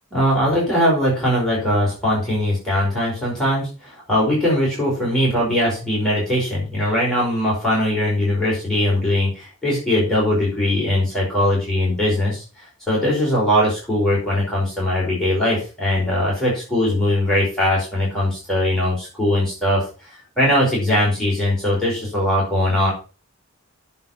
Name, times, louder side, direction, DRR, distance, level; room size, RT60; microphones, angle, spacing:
voice 1, 0.1-22.9, left 1 dB, 5° left, -7 dB, 5.1 m, -20 dB
9.7 x 7.6 x 5.7 m, 0.34 s
head